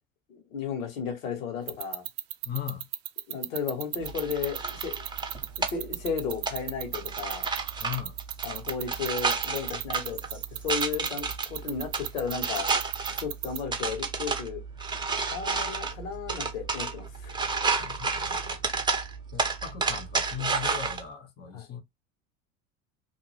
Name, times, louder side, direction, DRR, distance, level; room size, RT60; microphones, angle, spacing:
voice 1, 0.3-2.0 3.3-5.0 5.6-7.5 8.4-12.7 13.1-14.6 15.3-17.4 21.5-21.7, left 6 dB, 75° left, 1.3 m, -34 dB
sound 1, 1.7-13.6, right 14 dB, 40° right, 0.5 m, -33 dB
voice 2, 2.4-2.9 7.8-8.2 17.8-18.6 19.3-21.8, left 9 dB, 25° left, 0.8 m, -38 dB
sound 2, 4.0-21.0, right 4 dB, 10° right, 0.8 m, -31 dB
2.6 x 2.2 x 3.2 m
hypercardioid pair, 80°, 40 cm